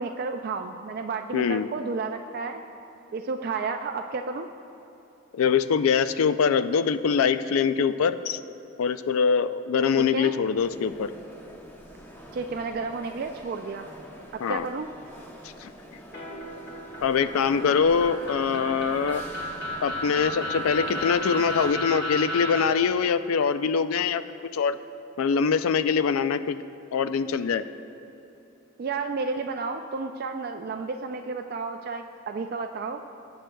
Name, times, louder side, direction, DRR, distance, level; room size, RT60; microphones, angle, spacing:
voice 1, 0.0-2.6 3.1-4.5 10.0-10.3 12.3-13.9 14.3-14.9 28.8-33.0, right 4 dB, 45° right, 5 dB, 0.3 m, -32 dB
voice 2, 1.3-1.7 5.3-8.4 8.8-11.1 14.4-14.7 15.6-15.7 17.0-19.2 19.8-24.2 24.5-24.8 25.2-26.6 26.9-27.6, left 6 dB, 85° left, 12 dB, 0.4 m, -23 dB
sound 1, 10.5-21.8, equal, 10° left, 0.8 m, -44 dB
sound 2, 16.1-22.6, left 1 dB, 50° left, 1.7 m, -33 dB
19.0 x 7.9 x 2.2 m, 2.9 s
head